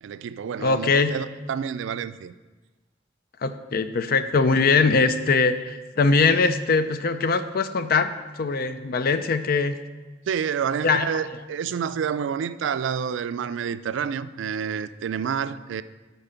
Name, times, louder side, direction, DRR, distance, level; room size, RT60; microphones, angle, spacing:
voice 1, 0.0-2.3 10.3-15.8, right 7 dB, 85° right, 0.3 m, -29 dB
voice 2, 0.6-1.1 3.4-9.8 10.8-11.1, left 4 dB, 55° left, 0.5 m, -21 dB
8.8 x 4.2 x 5.7 m
head